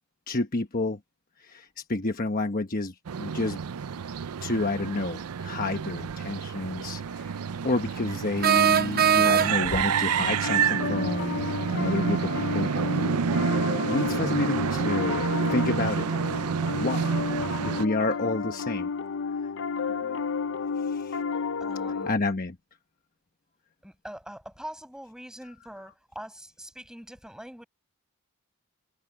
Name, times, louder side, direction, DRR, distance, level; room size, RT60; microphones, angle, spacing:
voice 1, 0.3-1.0 1.4-3.6 4.4-7.3 7.6-12.7 13.9-16.1 16.8-17.2 17.6-18.9 20.9-21.2 22.1-22.6, left 2 dB, 40° left, 1.1 m, -29 dB
sound 1, 3.1-17.8, right 6 dB, 85° right, 0.5 m, -29 dB
sound 2, 6.1-6.2 8.4-9.8, right 9 dB, 45° right, 0.7 m, -21 dB
Piano, 9.6-22.1, left 5 dB, 55° left, 0.6 m, -32 dB
voice 2, 19.9-20.2 21.6-22.2 23.8-27.7, equal, 5° right, 5.6 m, -44 dB
head